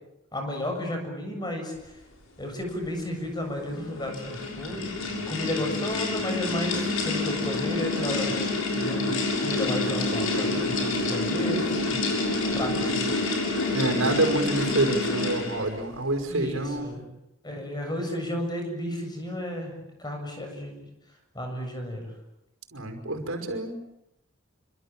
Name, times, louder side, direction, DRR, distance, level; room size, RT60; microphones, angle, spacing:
voice 1, 0.3-2.0 2.4-12.3 12.5-13.4 16.3-17.1 17.4-20.8 21.3-22.1, left 1 dB, 20° left, 3 dB, 7.3 m, -33 dB
sound 1, 3.6-15.7, left 2 dB, 85° left, 6.9 m, -28 dB
voice 2, 13.7-16.9 22.7-23.8, right 2 dB, 85° right, 5 dB, 5.3 m, -27 dB
27.5 x 25.5 x 7.5 m, 0.86 s
head